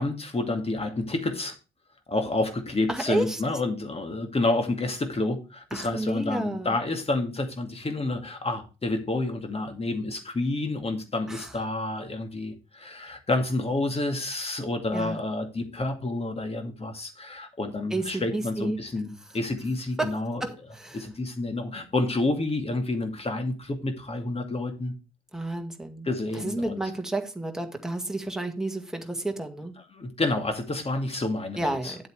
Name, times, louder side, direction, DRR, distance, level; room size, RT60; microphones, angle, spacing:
voice 1, 0.0-1.6 2.1-20.4 20.9-25.0 26.0-26.8 29.9-32.0, left 2 dB, 30° left, 2.2 m, -29 dB
voice 2, 2.9-3.4 5.7-6.7 11.3-11.5 14.9-15.2 17.9-18.8 20.0-20.1 20.4-21.0 25.3-26.1 26.4-29.7 31.6-32.0, right 2 dB, ahead, 1.9 m, -31 dB
9.8 x 7.8 x 3.4 m
hypercardioid pair, 45°, 21 cm